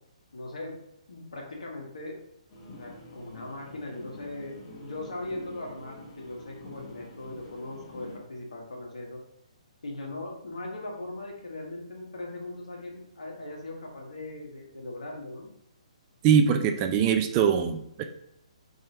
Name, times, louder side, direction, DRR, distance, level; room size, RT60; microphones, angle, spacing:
voice 1, 0.3-0.7 1.1-2.2 2.7-9.2 9.8-15.5, left 2 dB, 75° left, -1 dB, 1.3 m, -39 dB
sound 1, 2.5-8.2, left 1 dB, 25° left, 1.1 m, -46 dB
voice 2, 16.2-18.0, right 7 dB, 30° right, 6 dB, 0.4 m, -22 dB
4.3 x 3.5 x 2.8 m, 0.78 s
hypercardioid pair, 140°, 4 cm